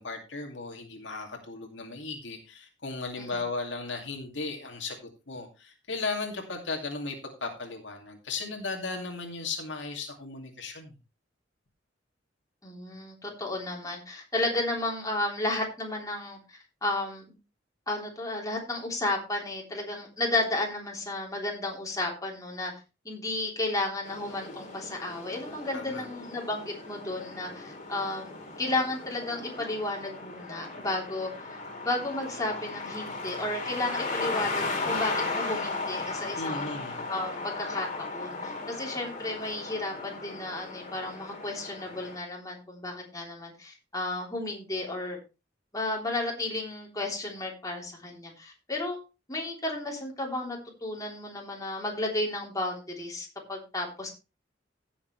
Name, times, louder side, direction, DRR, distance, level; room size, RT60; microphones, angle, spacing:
voice 1, 0.0-10.9 25.7-26.1 36.4-37.1, left 3 dB, 75° left, 2 dB, 2.4 m, -36 dB
voice 2, 12.6-17.3 17.9-22.7 23.0-36.7 37.1-37.9 38.1-45.2 45.7-49.0 49.3-54.1, left 2 dB, 20° left, -1 dB, 3.3 m, -33 dB
sound 1, 24.0-42.2, left 3 dB, 40° left, 3.0 m, -36 dB
16.5 x 7.0 x 3.2 m, 0.29 s
head